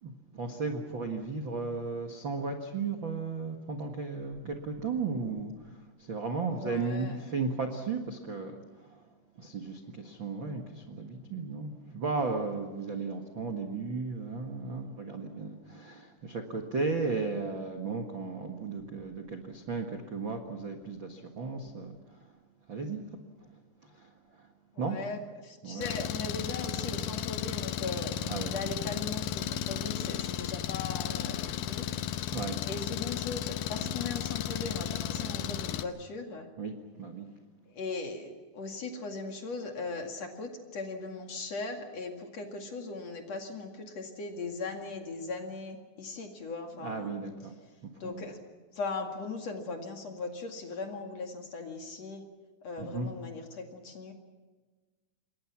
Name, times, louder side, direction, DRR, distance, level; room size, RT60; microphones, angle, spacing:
voice 1, 0.0-9.1 9.4-22.4 22.7-23.0 23.4-24.5 24.8-25.0 25.6-25.9 28.3-28.5 32.3-32.6 36.6-36.7 37.0-37.3 46.8-47.5 47.8-48.2 52.8-53.1, right 4 dB, 90° right, 3 dB, 1.0 m, -35 dB
voice 2, 6.5-7.2 24.7-28.2 28.5-31.4 31.7-32.3 32.7-36.5 37.7-47.1 48.0-48.4 48.7-52.2 52.6-54.1, left 3 dB, 45° left, 3 dB, 2.7 m, -39 dB
Engine, 25.8-35.8, left 10 dB, 75° left, 2.2 m, -34 dB
27.5 x 23.0 x 6.0 m, 1.3 s
omnidirectional pair, 5.1 m